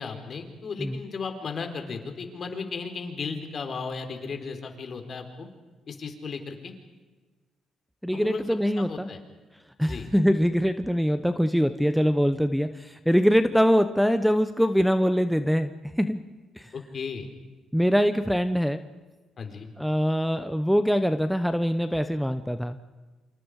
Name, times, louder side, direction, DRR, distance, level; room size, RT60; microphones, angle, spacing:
voice 1, 0.0-5.5 5.9-6.7 8.1-8.5 8.8-9.2 9.8-10.1 16.7-17.3 19.4-19.7, left 5 dB, 50° left, 6 dB, 3.9 m, -35 dB
voice 2, 8.0-9.1 9.8-16.2 16.6-16.7 17.7-18.8 19.8-22.8, equal, ahead, 11 dB, 1.0 m, -23 dB
28.5 x 26.0 x 5.0 m, 1.3 s
cardioid pair, 90°, 0 cm